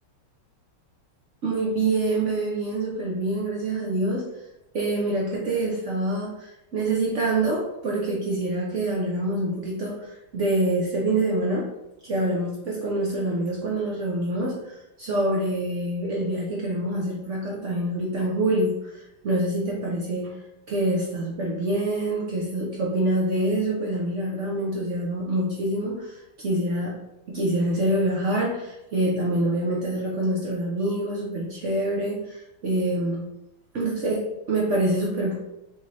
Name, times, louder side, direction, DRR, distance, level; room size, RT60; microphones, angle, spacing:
voice 1, 1.4-4.2 4.7-11.7 12.0-20.3 20.7-27.0 27.3-33.2 33.7-35.3, right 1 dB, 80° right, -4 dB, 0.6 m, -26 dB
4.0 x 3.8 x 3.2 m, 0.91 s
omnidirectional pair, 2.3 m